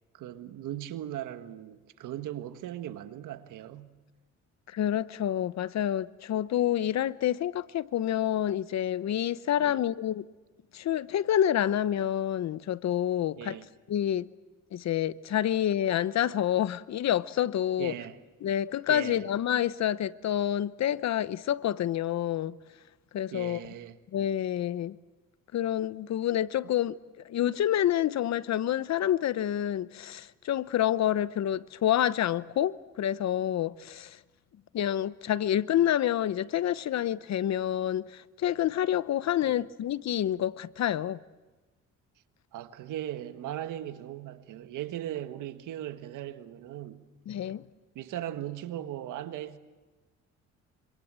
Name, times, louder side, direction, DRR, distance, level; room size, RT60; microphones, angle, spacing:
voice 1, 0.1-3.9 9.6-9.8 13.4-13.6 17.8-18.2 18.9-19.2 23.3-24.0 39.4-39.6 42.5-47.0 47.9-49.6, right 12 dB, 85° right, 1.7 m, -38 dB
voice 2, 4.7-10.2 10.7-13.6 13.9-14.3 14.7-17.9 18.4-22.6 23.1-23.6 24.1-25.0 25.5-34.2 34.7-41.2 47.3-47.6, left 11 dB, 60° left, 0.9 m, -28 dB
26.5 x 26.0 x 7.6 m
cardioid pair, 90°, 30 cm